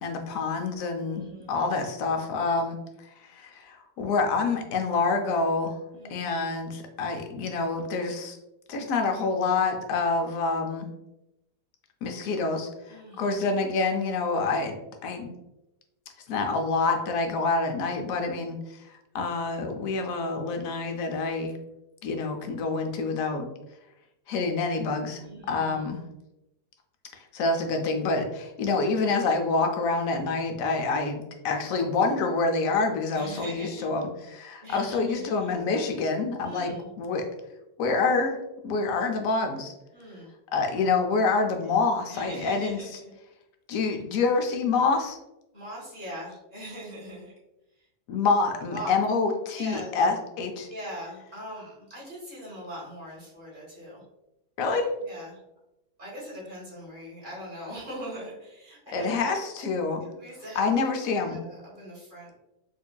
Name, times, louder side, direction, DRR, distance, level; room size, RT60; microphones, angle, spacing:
voice 1, 0.0-5.8 6.1-8.4 8.7-10.9 12.0-12.7 13.2-15.3 16.3-21.6 22.0-23.5 24.3-25.2 25.5-26.0 27.1-37.3 37.8-39.7 40.5-42.8 43.7-45.2 48.1-50.7 54.6-54.9 58.9-60.0 60.6-61.4, left 3 dB, 70° left, 4 dB, 0.9 m, -27 dB
voice 2, 1.0-1.6 5.9-6.3 12.9-13.5 25.2-25.9 28.6-28.8 33.1-33.9 34.6-35.5 36.4-36.9 39.9-40.3 42.1-43.1 45.5-47.3 47.7-47.9 48.7-48.9 49.5-49.9 50.7-54.0 55.0-55.4 56.0-59.3 60.0-62.3, equal, 35° right, -7 dB, 1.4 m, -41 dB
4.6 x 2.6 x 2.2 m, 0.92 s
omnidirectional pair, 1.7 m